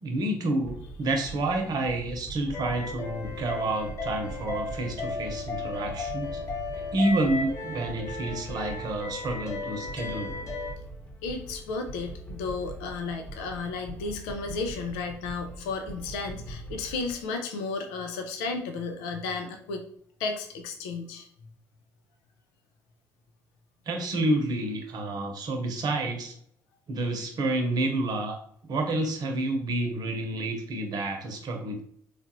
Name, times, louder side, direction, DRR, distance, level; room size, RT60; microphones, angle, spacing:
voice 1, 0.0-6.4 6.9-10.4 23.9-26.3 26.9-28.4 28.6-31.8, right 2 dB, 55° right, 4 dB, 0.9 m, -29 dB
sound 1, 0.6-17.3, right 2 dB, 15° left, 1.1 m, -43 dB
sound 2, 2.5-10.7, left 4 dB, 40° left, 0.7 m, -35 dB
sound 3, 2.6-10.5, right 2 dB, 85° right, 0.6 m, -48 dB
voice 2, 11.2-19.9 20.2-21.3, left 4 dB, 85° left, 5 dB, 0.5 m, -33 dB
3.3 x 2.4 x 2.9 m, 0.62 s
hypercardioid pair, 60°, 8 cm